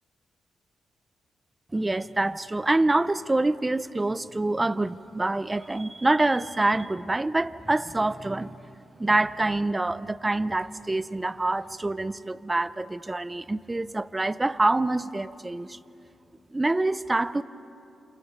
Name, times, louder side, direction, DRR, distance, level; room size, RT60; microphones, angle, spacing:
voice 1, 1.7-8.6 9.0-15.8 16.5-17.4, right 2 dB, 15° right, 16 dB, 0.5 m, -26 dB
28.5 x 27.5 x 5.3 m, 2.9 s
cardioid pair, 120°, 0 cm